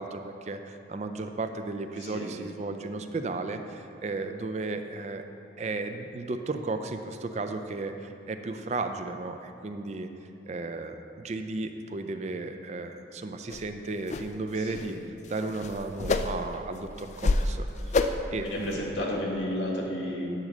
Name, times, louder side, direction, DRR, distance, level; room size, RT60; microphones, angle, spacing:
voice 1, 0.0-5.2 5.6-10.1 10.5-15.0 15.3-17.9 18.3-18.8, right 3 dB, 35° right, 7 dB, 0.4 m, -34 dB
voice 2, 2.0-2.3 14.6-14.9 18.1-20.3, left 1 dB, 85° left, -3 dB, 1.7 m, -32 dB
sound 1, 13.5-13.6 14.1-14.3 14.6-14.9 15.2-16.6 17.0-17.5 17.9-18.3 18.7-18.8, left 3 dB, 35° left, 0.3 m, -28 dB
10.5 x 3.9 x 6.4 m, 2.8 s
head